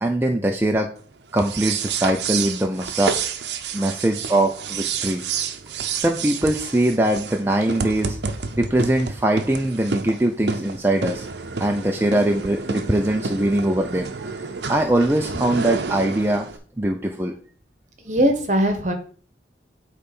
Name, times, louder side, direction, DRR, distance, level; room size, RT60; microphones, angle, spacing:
voice 1, 0.0-0.9 1.3-3.3 3.7-5.2 6.0-8.2 8.6-11.3 11.6-14.1 14.7-16.5 16.8-17.3, right 1 dB, 10° right, 2 dB, 0.5 m, -21 dB
sound 1, 1.3-16.6, right 5 dB, 70° right, 0.7 m, -30 dB
voice 2, 18.0-18.9, equal, 40° right, 6 dB, 1.2 m, -20 dB
8.4 x 3.3 x 5.3 m, 0.42 s
head